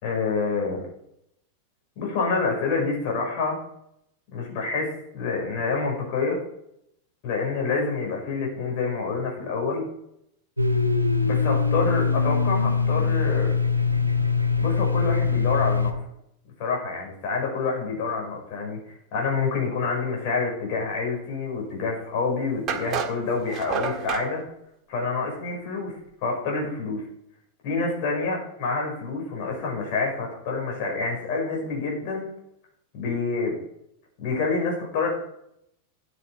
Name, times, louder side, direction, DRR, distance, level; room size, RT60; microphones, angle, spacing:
voice 1, 0.0-0.8 2.0-3.6 4.3-6.4 7.2-9.8 11.2-13.6 14.6-16.0 16.6-24.4 24.9-25.9 26.2-27.0 27.6-32.3 32.9-33.5 34.2-35.1, left 4 dB, 45° left, 0 dB, 6.0 m, -27 dB
Domestic sounds home sounds, 10.6-15.9, left 5 dB, 90° right, 1.0 m, -22 dB
sound 1, 21.8-21.9 22.7-24.3, right 6 dB, 30° right, 1.7 m, -29 dB
13.0 x 9.4 x 5.0 m, 0.75 s
figure-of-eight pair, 90°, 0 cm